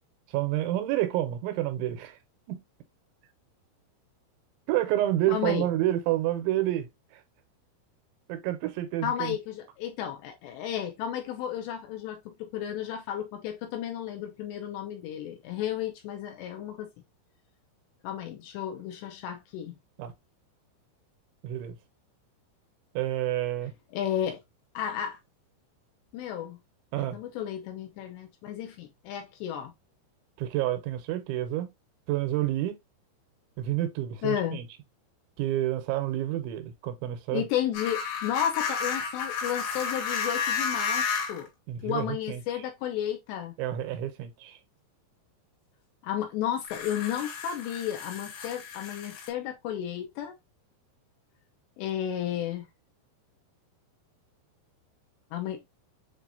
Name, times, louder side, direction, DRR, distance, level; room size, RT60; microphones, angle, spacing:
voice 1, 0.3-2.2 2.5-2.6 4.7-7.2 8.3-9.4 20.0-20.1 21.4-21.8 23.0-23.7 26.9-27.2 30.4-31.7 32.1-32.8 33.6-34.7 35.4-37.5 41.7-42.4 43.6-44.6, right 14 dB, 85° right, 2.9 m, -29 dB
voice 2, 5.3-5.7 9.0-16.9 18.0-19.8 23.9-24.4 24.7-25.2 26.1-26.6 27.0-29.7 34.2-34.6 37.3-41.5 41.8-43.6 46.0-50.3 51.8-52.7 55.3-55.7, left 10 dB, 80° left, 2.6 m, -33 dB
sound 1, 37.7-41.5 42.5-42.6 46.6-49.3, left 6 dB, 65° left, 3.3 m, -32 dB
7.4 x 2.5 x 2.6 m
omnidirectional pair, 5.4 m